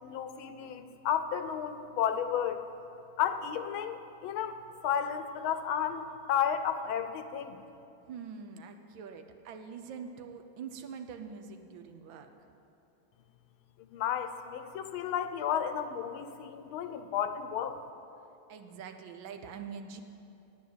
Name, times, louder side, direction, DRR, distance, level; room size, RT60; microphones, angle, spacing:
voice 1, 0.0-2.6 3.2-7.6 13.8-17.8, left 8 dB, 80° left, 9 dB, 1.5 m, -33 dB
voice 2, 8.1-12.5 18.5-20.0, right 6 dB, 75° right, 7 dB, 1.5 m, -44 dB
9.4 x 8.8 x 9.2 m, 2.8 s
omnidirectional pair, 2.3 m